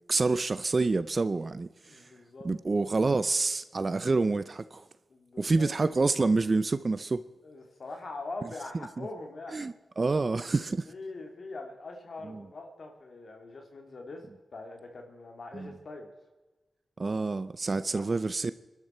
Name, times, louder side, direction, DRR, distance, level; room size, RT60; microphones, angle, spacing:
voice 1, 0.1-2.1 2.4-4.8 5.4-7.3 9.0-9.1 9.5-10.9 12.2-12.5 15.5-15.7 17.0-18.5, right 3 dB, 35° right, 0.5 m, -28 dB
voice 2, 1.9-2.5 5.1-5.7 7.4-9.6 10.1-10.3 10.6-14.2 14.5-16.1 17.8-18.1, left 2 dB, 55° left, 2.5 m, -43 dB
25.0 x 12.0 x 4.4 m
wide cardioid pair, 110°, 0 cm